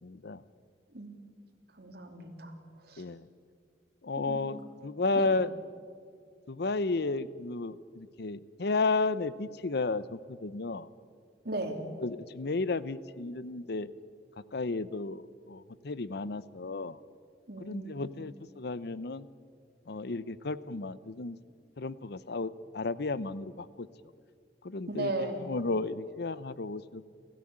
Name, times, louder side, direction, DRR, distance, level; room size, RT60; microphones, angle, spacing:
voice 1, 0.0-0.4 3.0-3.3 4.0-5.5 6.5-10.9 12.0-13.9 14.5-17.0 17.6-19.3 19.9-21.4 21.8-23.9 24.6-27.1, left 3 dB, 65° left, 16 dB, 0.7 m, -33 dB
voice 2, 1.8-2.5 2.9-3.0 4.3-4.6 5.2-5.3 11.4-11.8 17.5-18.2 24.9-25.4, right 2 dB, 60° right, 2 dB, 3.0 m, -36 dB
30.0 x 13.5 x 8.8 m, 2.2 s
head